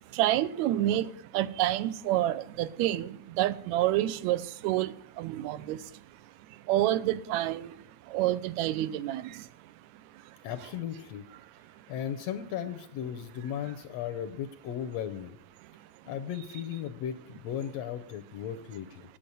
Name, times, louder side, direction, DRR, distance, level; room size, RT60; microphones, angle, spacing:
voice 1, 0.2-1.1 1.3-3.1 3.4-4.9 5.2-5.8 6.7-7.7 8.1-9.2, right 14 dB, 80° right, 1.9 m, -28 dB
voice 2, 10.4-11.3 11.9-15.4 16.0-19.0, left 9 dB, 75° left, 1.6 m, -36 dB
8.6 x 8.6 x 9.1 m
omnidirectional pair, 3.3 m